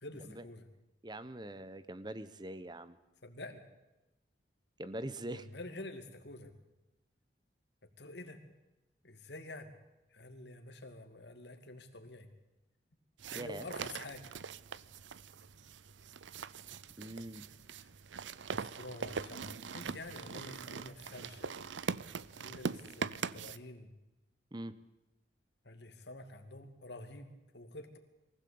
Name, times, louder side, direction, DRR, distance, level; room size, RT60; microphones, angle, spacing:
voice 1, 0.0-0.7 3.2-3.6 5.3-6.5 8.0-8.4 9.0-9.7 10.1-12.3 13.3-14.3 18.5-21.5 22.3-23.9 25.6-28.0, left 2 dB, 65° left, 5 dB, 2.5 m, -48 dB
voice 2, 1.0-3.0 4.8-5.5 13.3-13.7 17.0-17.4 24.5-24.7, right 1 dB, 25° right, 14 dB, 1.0 m, -43 dB
sound 1, 13.2-23.6, right 5 dB, 85° right, 0.7 m, -42 dB
23.0 x 16.0 x 8.7 m, 0.99 s
head